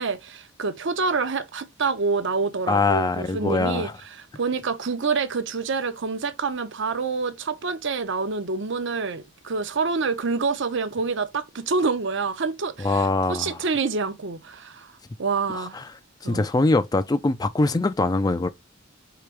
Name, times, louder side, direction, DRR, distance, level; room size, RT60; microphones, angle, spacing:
voice 1, 0.0-3.9 4.2-14.9 15.2-15.8 16.2-16.5, right 4 dB, 60° right, 0.8 m, -27 dB
voice 2, 2.7-3.9 12.8-13.6 15.5-15.9 16.2-18.5, left 3 dB, 20° left, 0.4 m, -23 dB
4.9 x 3.4 x 3.2 m
head